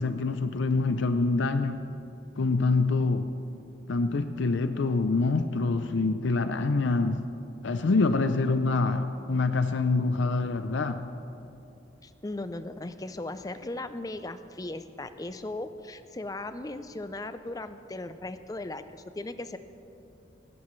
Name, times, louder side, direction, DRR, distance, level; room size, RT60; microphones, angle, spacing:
voice 1, 0.0-1.8 2.4-3.3 3.9-7.2 7.6-11.1, left 3 dB, 70° left, 9 dB, 0.5 m, -26 dB
voice 2, 12.0-19.6, left 2 dB, 20° left, 11 dB, 0.4 m, -37 dB
19.0 x 16.5 x 3.2 m, 2.8 s
head